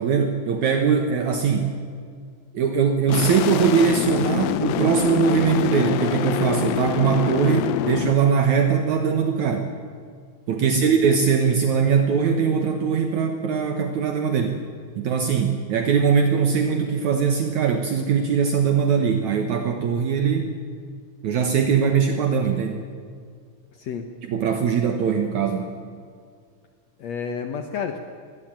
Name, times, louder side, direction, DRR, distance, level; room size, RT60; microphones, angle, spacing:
voice 1, 0.0-1.7 2.5-9.7 10.5-14.6 15.0-20.5 21.2-22.8 24.2-25.8, right 6 dB, 65° right, 5 dB, 2.5 m, -21 dB
sound 1, 3.1-8.1, left 13 dB, 85° left, 2.5 m, -25 dB
voice 2, 10.6-10.9 23.7-24.1 27.0-28.0, left 6 dB, 60° left, 6 dB, 2.1 m, -31 dB
21.5 x 17.0 x 8.9 m, 2.1 s
omnidirectional pair, 3.9 m